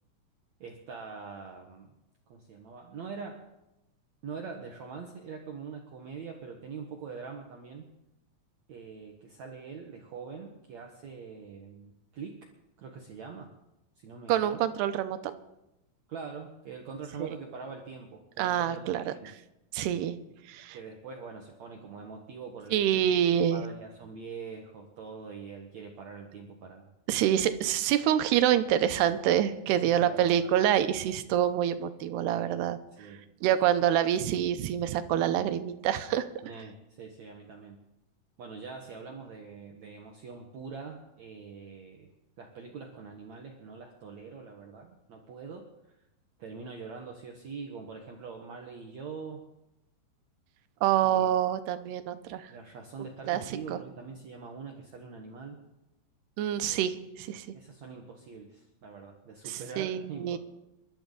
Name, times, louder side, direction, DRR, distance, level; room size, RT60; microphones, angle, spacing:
voice 1, 0.6-1.9 2.3-3.4 4.2-7.9 8.7-12.5 12.8-13.5 14.0-14.6 16.1-19.2 20.7-23.1 23.5-26.9 29.8-30.5 32.9-33.2 33.6-33.9 36.4-37.8 38.4-42.1 42.4-46.0 46.4-49.4 51.0-51.3 52.5-55.6 56.6-56.9 57.5-60.4, right 5 dB, 60° right, 1 dB, 2.0 m, -43 dB
voice 2, 14.3-15.3 17.2-17.3 18.4-19.1 19.7-20.2 20.5-20.8 22.7-23.6 27.1-32.8 33.4-36.3 50.8-52.5 53.3-53.4 53.7-53.8 56.4-57.5 59.4-60.4, right 10 dB, 85° right, 10 dB, 2.8 m, -26 dB
28.5 x 12.0 x 4.0 m, 0.90 s
omnidirectional pair, 4.8 m